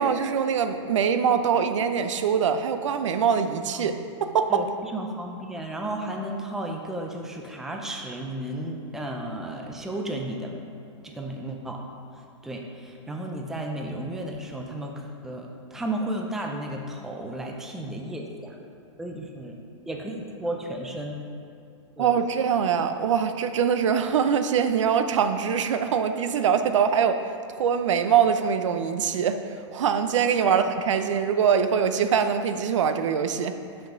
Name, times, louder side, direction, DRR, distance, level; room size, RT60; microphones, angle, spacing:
voice 1, 0.0-3.9 4.2-4.7 22.0-27.2 27.5-29.4 29.7-33.5, right 7 dB, 75° right, 9 dB, 0.6 m, -23 dB
voice 2, 4.5-10.6 11.0-11.8 12.4-18.6 19.0-19.5 19.9-21.2 22.0-22.1 30.3-30.7, right 1 dB, 5° right, 1 dB, 0.4 m, -33 dB
5.9 x 5.2 x 5.7 m, 2.5 s
hypercardioid pair, 150°, 16 cm